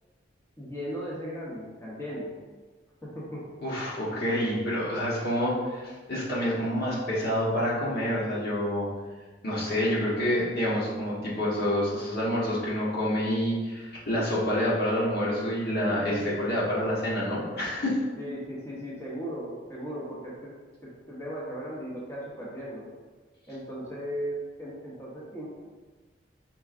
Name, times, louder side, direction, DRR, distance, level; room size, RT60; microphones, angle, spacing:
voice 1, 0.6-2.3 3.0-3.4 4.1-4.4 18.2-20.5 20.8-22.8 23.5-25.5, equal, 15° left, -8 dB, 0.9 m, -37 dB
voice 2, 3.6-8.9 9.4-18.0, equal, 55° left, -6 dB, 1.2 m, -28 dB
4.6 x 4.5 x 2.5 m, 1.3 s
head